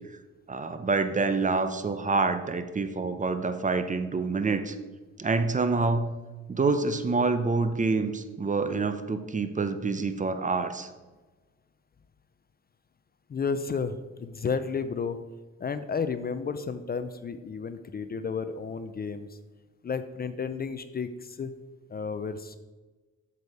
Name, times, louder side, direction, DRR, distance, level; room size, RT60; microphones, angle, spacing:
voice 1, 0.5-4.8 5.2-6.2 6.5-10.9, right 3 dB, 25° right, 10 dB, 0.7 m, -27 dB
voice 2, 13.3-15.2 15.6-19.4 19.8-21.5 21.9-22.6, left 5 dB, 30° left, 11 dB, 0.5 m, -32 dB
8.1 x 7.0 x 4.8 m, 1.2 s
cardioid pair, 90°, 30 cm